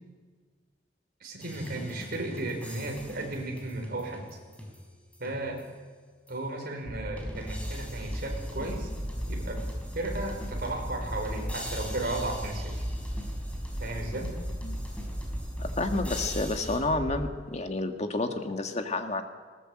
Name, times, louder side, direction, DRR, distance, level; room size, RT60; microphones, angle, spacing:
voice 1, 1.2-4.4 5.2-5.6 6.3-8.9 9.3-9.7 9.9-12.8 13.8-14.4, right 2 dB, 55° right, 2 dB, 4.8 m, -35 dB
sound 1, 1.4-5.8 6.3-6.4 7.2-16.8, equal, 5° left, 4.5 m, -43 dB
sound 2, 6.8-17.3, equal, 15° right, 2.1 m, -36 dB
voice 2, 15.6-19.2, left 2 dB, 35° left, 6 dB, 1.8 m, -30 dB
20.0 x 19.0 x 7.8 m, 1.5 s
head